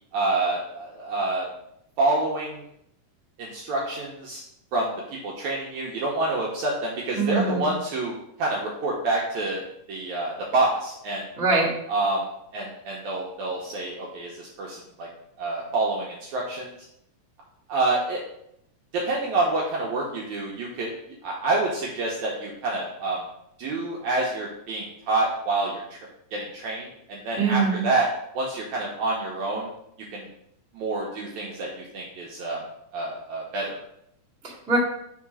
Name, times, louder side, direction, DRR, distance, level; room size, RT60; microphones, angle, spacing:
voice 1, 0.1-1.5 2.0-2.6 3.4-4.4 4.7-4.9 5.2-8.1 8.4-11.3 11.9-15.1 15.4-16.7 17.7-18.2 18.9-20.9 21.2-23.2 23.6-26.0 26.3-28.1 28.3-29.7 30.1-30.3 30.7-32.6 32.9-33.8, right 2 dB, 70° right, -3 dB, 1.9 m, -27 dB
voice 2, 7.2-7.7 11.4-11.7 27.4-27.8 34.4-34.8, right 4 dB, 5° right, -8 dB, 0.9 m, -23 dB
4.6 x 4.2 x 4.9 m, 0.74 s
omnidirectional pair, 4.1 m